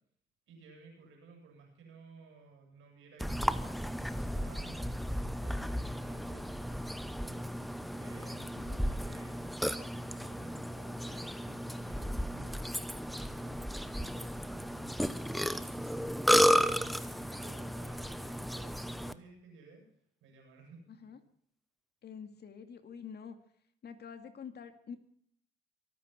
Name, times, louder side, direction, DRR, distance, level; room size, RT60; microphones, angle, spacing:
voice 1, 0.5-16.3 16.6-19.8 20.2-20.8, right 3 dB, 85° right, 2 dB, 7.9 m, -56 dB
Burping eructation, 3.2-19.1, equal, ahead, 0.9 m, -33 dB
voice 2, 20.9-21.2 22.0-23.4 23.8-25.0, left 7 dB, 55° left, 8 dB, 2.4 m, -47 dB
23.5 x 9.3 x 6.0 m, 0.66 s
cardioid pair, 90°, 20 cm